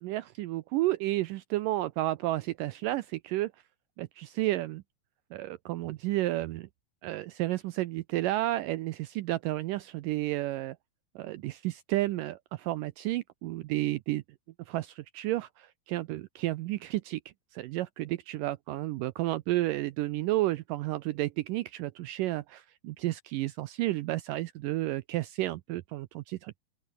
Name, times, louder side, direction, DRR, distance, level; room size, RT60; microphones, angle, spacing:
voice 1, 0.0-3.5 4.0-4.8 5.3-6.7 7.0-10.8 11.2-14.2 14.7-17.2 17.5-26.6, right 17 dB, 80° right, 2.0 m, -31 dB
open air
omnidirectional pair, 4.4 m